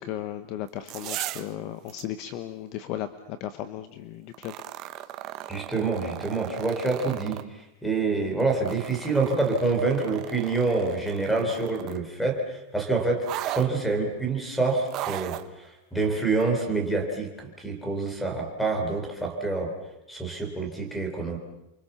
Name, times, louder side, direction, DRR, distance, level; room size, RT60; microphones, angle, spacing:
voice 1, 0.0-4.5, left 11 dB, 35° left, 11 dB, 1.0 m, -35 dB
sound 1, 0.7-1.5 1.9-2.0 4.3-7.4 8.4-12.1 13.2-13.7 14.9-15.5 16.4-16.5, right 14 dB, 30° right, 1.1 m, -37 dB
voice 2, 5.5-13.2 13.5-19.7 20.1-21.4, right 3 dB, 5° left, 4 dB, 4.1 m, -27 dB
29.5 x 24.5 x 7.1 m, 0.90 s
supercardioid pair, 175°, 0 cm